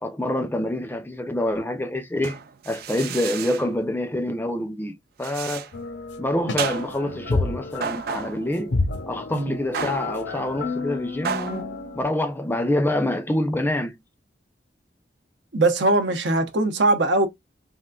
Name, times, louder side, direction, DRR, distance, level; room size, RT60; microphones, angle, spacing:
voice 1, 0.0-2.4 2.7-5.7 6.2-8.7 9.1-11.7 12.0-14.0, left 1 dB, 10° left, 0.5 m, -26 dB
sound 1, 2.2-3.7 5.2-5.7 6.6-7.1 7.8-8.5 9.7-10.2 11.2-11.6, right 7 dB, 60° right, 0.4 m, -31 dB
sound 2, 5.7-12.0, left 3 dB, 85° left, 0.7 m, -30 dB
voice 2, 15.5-17.3, right 2 dB, 80° right, 0.8 m, -21 dB
3.6 x 2.4 x 2.3 m
head